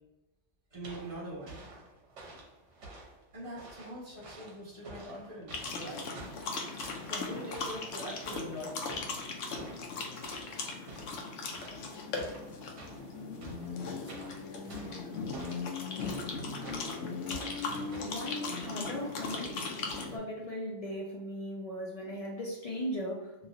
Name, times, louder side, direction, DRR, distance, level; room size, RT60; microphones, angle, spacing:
voice 1, 0.7-1.6 3.3-6.3 7.0-8.9, equal, 30° right, -7 dB, 1.2 m, -43 dB
sound 1, 0.8-20.0, right 2 dB, 80° right, 1.1 m, -50 dB
sound 2, 5.5-20.2, left 4 dB, 85° left, 0.9 m, -38 dB
voice 2, 18.0-19.5 20.1-23.3, equal, 60° left, -2 dB, 0.4 m, -38 dB
3.0 x 2.9 x 2.5 m, 1.1 s
omnidirectional pair, 1.2 m